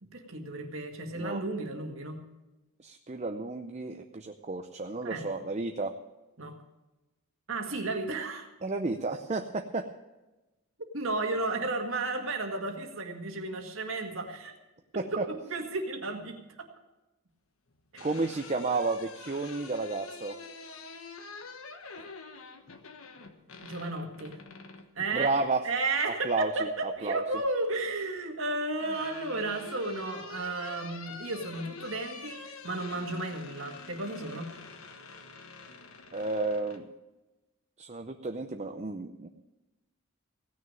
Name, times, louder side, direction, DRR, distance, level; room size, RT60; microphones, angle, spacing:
voice 1, 0.0-2.2 5.0-5.3 6.4-6.6 7.5-8.5 10.9-14.5 14.9-15.2 15.5-16.7 17.9-18.1 23.6-24.4 25.0-25.3 25.6-34.5, right 2 dB, 65° right, 3 dB, 1.9 m, -33 dB
voice 2, 2.8-5.9 8.6-9.9 15.0-15.2 18.0-20.3 25.1-25.6 26.2-26.7 27.0-27.2 36.1-36.9 37.8-39.3, right 3 dB, 30° right, 5 dB, 0.6 m, -32 dB
sound 1, 17.7-24.9 26.4-27.1 28.3-36.8, left 4 dB, 75° left, 1.2 m, -46 dB
17.0 x 6.4 x 9.0 m, 1.1 s
head